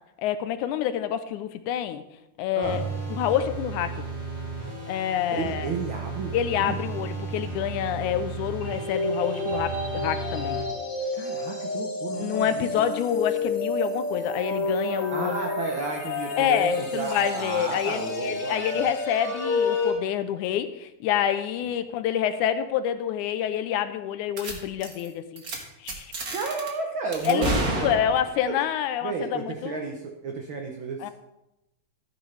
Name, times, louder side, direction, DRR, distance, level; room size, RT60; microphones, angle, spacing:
voice 1, 0.2-2.0 2.4-2.8 3.1-4.1 4.9-5.7 6.3-10.6 12.1-15.4 16.4-25.4 25.8-26.1 27.2-30.0 31.0-31.1, left 10 dB, 80° left, 11 dB, 2.1 m, -27 dB
sound 1, 2.6-10.6, right 4 dB, 10° right, 2.3 m, -34 dB
voice 2, 5.3-6.8 11.1-12.9 15.1-18.9 26.3-27.9 28.5-28.6 29.0-31.1, right 4 dB, 80° right, 2 dB, 1.1 m, -33 dB
sound 2, 8.6-19.9, left 2 dB, 50° left, 3.4 m, -30 dB
sound 3, 24.4-24.5 24.8-25.1 25.4-25.6 25.9-26.7 27.1-28.5, right 2 dB, 40° right, 1.4 m, -30 dB
13.5 x 9.7 x 3.3 m, 0.90 s
omnidirectional pair, 3.5 m